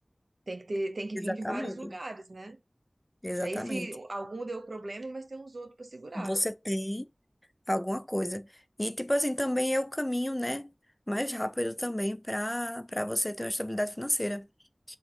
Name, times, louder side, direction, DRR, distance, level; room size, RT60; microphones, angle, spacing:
voice 1, 0.5-2.6 3.4-6.4, right 2 dB, 90° right, 0.5 m, -37 dB
voice 2, 1.1-1.9 3.2-3.9 6.2-7.1 7.7-8.5 8.8-10.7 11.1-14.5, left 1 dB, 15° left, 0.4 m, -31 dB
3.6 x 2.5 x 4.2 m
wide cardioid pair, 45°, 0 cm